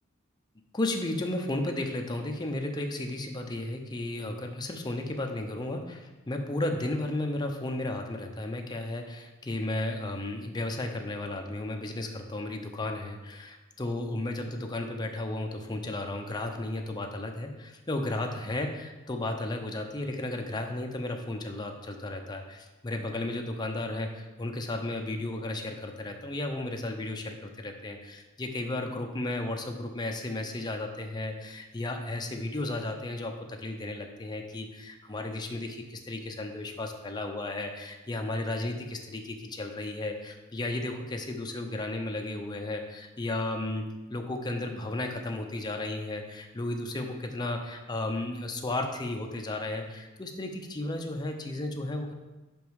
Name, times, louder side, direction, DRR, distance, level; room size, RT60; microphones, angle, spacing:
voice 1, 0.7-52.1, left 2 dB, 20° left, 3 dB, 0.6 m, -34 dB
5.3 x 5.1 x 4.7 m, 1.1 s
head